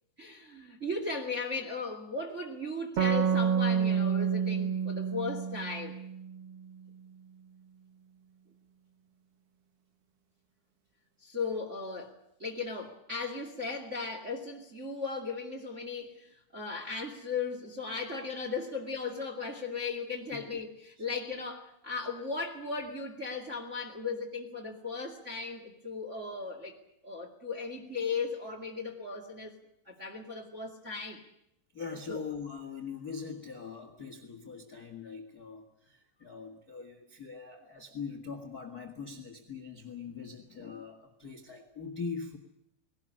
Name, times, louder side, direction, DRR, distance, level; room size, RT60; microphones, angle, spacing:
voice 1, 0.2-6.0 11.2-26.7 27.0-29.5 29.9-31.2 32.1-32.2, left 4 dB, 25° right, 2 dB, 1.8 m, -37 dB
sound 1, 3.0-6.5, right 7 dB, 60° right, 1.5 m, -29 dB
voice 2, 31.7-42.4, left 5 dB, 35° left, 6 dB, 1.5 m, -42 dB
20.5 x 18.0 x 9.9 m, 0.80 s
omnidirectional pair, 4.7 m